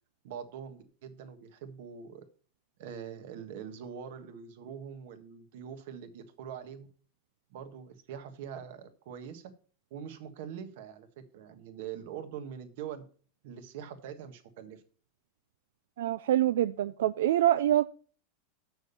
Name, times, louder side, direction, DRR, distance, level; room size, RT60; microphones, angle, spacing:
voice 1, 0.2-2.2 2.8-6.9 7.5-9.5 9.9-13.0 13.4-14.8, right 8 dB, 60° right, 8 dB, 1.4 m, -43 dB
voice 2, 16.0-17.9, right 12 dB, 90° right, 13 dB, 0.4 m, -25 dB
7.0 x 6.2 x 6.8 m, 0.42 s
supercardioid pair, 170°, 0 cm